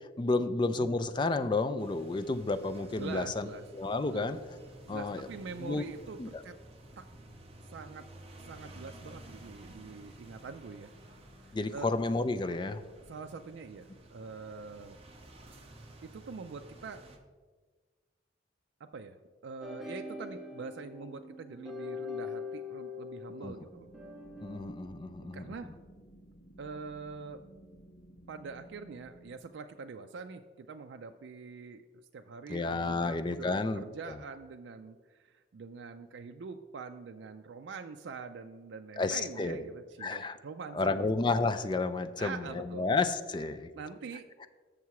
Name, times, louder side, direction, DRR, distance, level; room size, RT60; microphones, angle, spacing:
voice 1, 0.2-3.5 3.7-4.4 4.9-5.3 5.6-5.8 6.2-6.3 11.5-12.8 23.4-23.5 24.4-25.5 32.5-34.2 39.0-39.6 40.0-40.4 40.7-43.7, left 3 dB, 25° left, 10 dB, 0.3 m, -31 dB
sound 1, 1.8-17.2, right 1 dB, 30° right, 0.9 m, -53 dB
voice 2, 3.0-3.6 4.1-4.3 4.9-6.6 7.0-7.1 7.7-8.0 8.3-10.9 11.7-11.9 13.1-15.0 16.0-17.0 18.9-19.2 19.4-23.9 25.2-25.7 26.6-27.4 28.3-31.8 32.1-41.1 42.2-42.9 43.5-44.3, right 5 dB, 70° right, 6 dB, 0.4 m, -44 dB
sound 2, 19.6-24.7, left 4 dB, ahead, 0.7 m, -42 dB
sound 3, 23.7-29.3, right 1 dB, 65° left, 0.8 m, -56 dB
7.0 x 6.5 x 4.6 m, 1.4 s
head